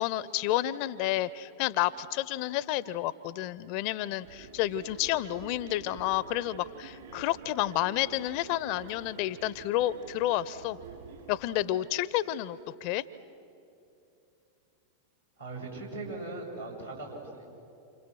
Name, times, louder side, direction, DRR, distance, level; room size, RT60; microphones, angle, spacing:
voice 1, 0.0-10.8 11.3-13.0, left 14 dB, 45° left, 19 dB, 0.7 m, -30 dB
sound 1, 4.2-11.4, right 6 dB, 60° right, 5.6 m, -48 dB
voice 2, 15.4-17.5, right 2 dB, 85° right, -4 dB, 6.8 m, -39 dB
29.0 x 28.0 x 6.4 m, 2.8 s
figure-of-eight pair, 90°, 0 cm